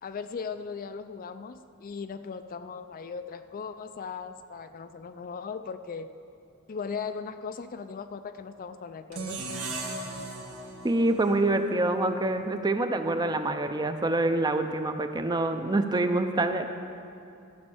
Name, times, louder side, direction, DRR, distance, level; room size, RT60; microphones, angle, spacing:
voice 1, 0.0-6.1 6.7-9.6, left 5 dB, 40° left, 10 dB, 0.4 m, -38 dB
sound 1, 9.1-12.3, right 3 dB, 85° right, 1.4 m, -38 dB
voice 2, 10.8-16.7, right 2 dB, 20° right, 7 dB, 0.5 m, -26 dB
14.0 x 5.4 x 7.1 m, 2.6 s
head